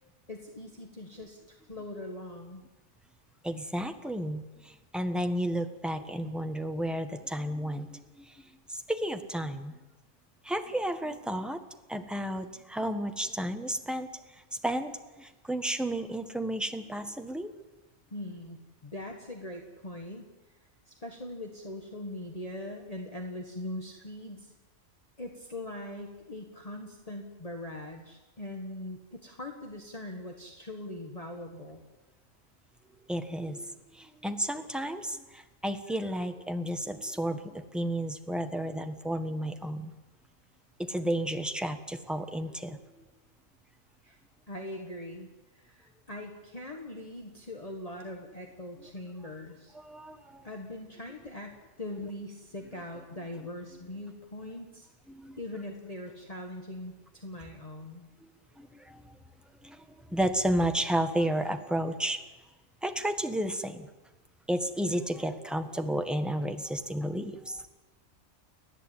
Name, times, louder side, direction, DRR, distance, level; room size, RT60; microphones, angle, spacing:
voice 1, 0.3-2.6 18.1-20.6 20.9-24.5 25.2-31.8 44.0-44.2 44.5-49.7 50.4-54.9 55.4-58.1, left 1 dB, 30° left, 2 dB, 1.8 m, -41 dB
voice 2, 3.4-8.2 8.7-9.7 10.4-11.6 11.9-14.1 14.6-17.5 33.1-39.9 40.9-42.8 49.7-50.5 55.1-55.4 58.6-59.0 59.6-59.8 60.1-62.2 62.8-63.9 64.5-67.6, right 1 dB, ahead, 6 dB, 1.4 m, -32 dB
30.0 x 11.0 x 9.1 m, 1.1 s
omnidirectional pair, 1.4 m